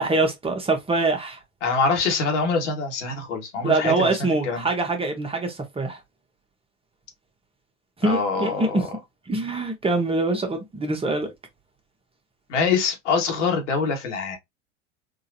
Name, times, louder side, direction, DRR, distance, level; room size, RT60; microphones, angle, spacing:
voice 1, 0.0-1.4 3.6-6.0 8.0-8.9 9.3-11.3, right 2 dB, 15° right, 1.0 m, -24 dB
voice 2, 1.6-4.1 4.5-4.6 8.0-8.9 12.5-14.4, left 4 dB, 75° left, 1.5 m, -24 dB
3.8 x 2.6 x 2.6 m
hypercardioid pair, 85°, 36 cm